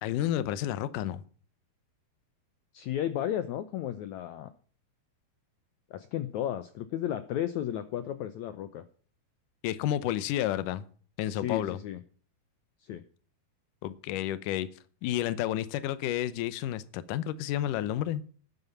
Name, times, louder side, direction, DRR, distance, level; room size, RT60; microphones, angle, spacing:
voice 1, 0.0-1.2 9.6-10.8 11.2-11.8 13.8-14.7 15.0-18.2, left 12 dB, 70° left, 2.2 m, -31 dB
voice 2, 2.7-4.5 5.9-8.8 11.3-12.0 12.8-13.0, left 11 dB, 90° left, 1.6 m, -33 dB
12.5 x 9.7 x 5.6 m
omnidirectional pair, 4.4 m